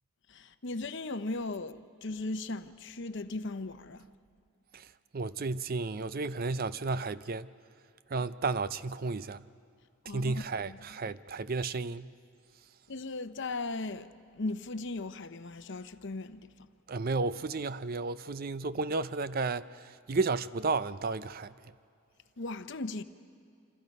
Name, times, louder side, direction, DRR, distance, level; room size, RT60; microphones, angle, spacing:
voice 1, 0.3-4.1 10.1-10.8 12.9-16.5 22.4-23.0, left 2 dB, 55° left, 0.8 m, -37 dB
voice 2, 5.1-7.5 8.1-9.4 10.1-12.1 16.9-21.5, right 3 dB, 40° right, 0.5 m, -33 dB
27.0 x 27.0 x 5.4 m
head